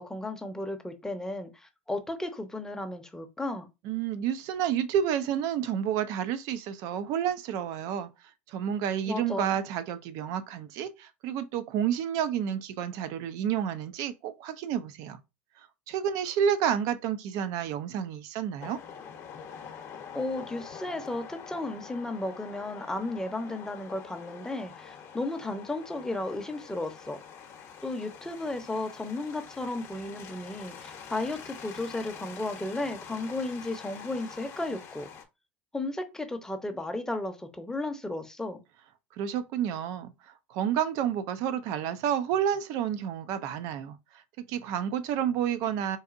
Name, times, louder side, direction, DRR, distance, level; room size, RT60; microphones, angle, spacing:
voice 1, 0.0-3.7 9.1-9.6 20.1-27.2 27.8-35.1 35.7-38.6, left 2 dB, 10° left, 0.7 m, -34 dB
voice 2, 3.8-8.1 8.5-15.2 15.9-18.8 39.2-40.1 40.5-44.0 44.4-46.0, right 9 dB, 60° right, 0.5 m, -30 dB
sound 1, 18.6-35.2, left 7 dB, 45° left, 0.8 m, -45 dB
4.0 x 2.5 x 2.5 m
hypercardioid pair, 85°, 7 cm